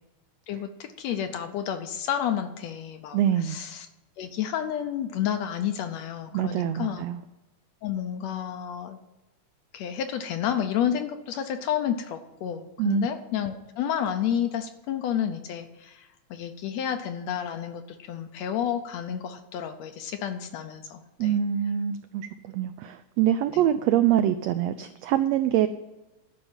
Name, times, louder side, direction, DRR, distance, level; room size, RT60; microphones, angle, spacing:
voice 1, 0.5-3.9 4.2-7.0 7.8-9.0 9.7-21.3 23.5-23.6, left 9 dB, 75° left, 8 dB, 1.7 m, -30 dB
voice 2, 3.1-3.6 6.3-7.2 12.8-13.1 21.2-25.7, right 11 dB, 85° right, 11 dB, 1.5 m, -24 dB
12.0 x 5.5 x 8.7 m, 1.0 s
omnidirectional pair, 3.5 m